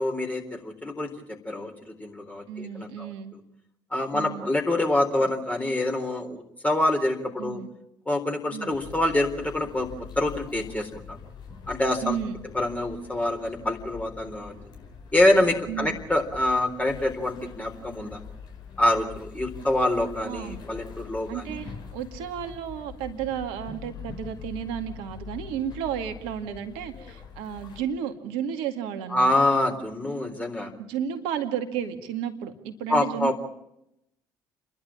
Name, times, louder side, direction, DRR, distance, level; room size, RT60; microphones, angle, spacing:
voice 1, 0.0-1.7 2.0-3.1 3.9-7.6 8.1-9.9 10.2-11.0 11.7-12.2 12.5-14.5 15.1-18.2 18.8-21.6 29.1-30.7 32.9-33.4, left 1 dB, 15° left, 2 dB, 3.8 m, -26 dB
voice 2, 2.5-3.4 4.1-4.5 7.4-7.7 8.5-8.7 12.0-12.5 15.7-16.0 20.2-20.6 21.3-29.3 30.8-33.4, right 9 dB, 65° right, 7 dB, 2.2 m, -33 dB
sound 1, 8.7-27.8, left 6 dB, 45° left, 4.8 m, -44 dB
30.0 x 11.5 x 8.8 m, 0.82 s
figure-of-eight pair, 50°, 10 cm